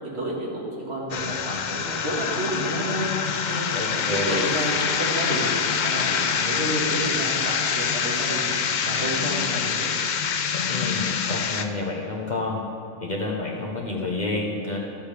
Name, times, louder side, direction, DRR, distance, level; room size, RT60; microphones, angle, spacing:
voice 1, 0.0-3.1 3.5-5.5 5.8-9.9, right 1 dB, 60° right, -5 dB, 2.2 m, -30 dB
sound 1, 1.1-11.6, left 7 dB, 65° left, 0.4 m, -25 dB
voice 2, 3.7-4.5 10.7-12.6 13.0-14.8, left 2 dB, 40° left, -2 dB, 1.0 m, -29 dB
13.0 x 7.3 x 3.4 m, 2.5 s
omnidirectional pair, 1.3 m